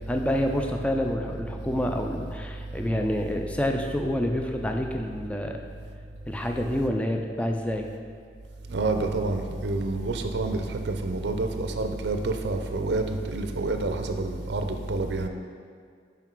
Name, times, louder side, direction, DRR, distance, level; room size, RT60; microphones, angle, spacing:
voice 1, 0.1-5.6 6.3-7.9, left 1 dB, 5° left, 3 dB, 0.3 m, -28 dB
voice 2, 8.7-15.3, right 2 dB, 70° right, 6 dB, 0.5 m, -28 dB
5.9 x 4.6 x 4.5 m, 2.1 s
head